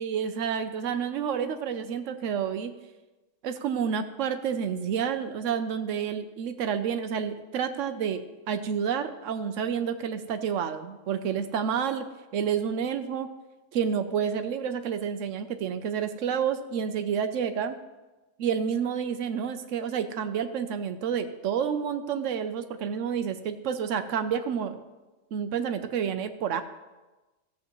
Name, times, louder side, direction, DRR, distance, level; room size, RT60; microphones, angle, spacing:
voice 1, 0.0-2.7 3.4-12.1 12.3-13.3 13.7-17.8 18.4-24.8 25.3-26.6, right 7 dB, 80° right, 9 dB, 1.0 m, -29 dB
15.0 x 7.4 x 3.0 m, 1.1 s
omnidirectional pair, 1.3 m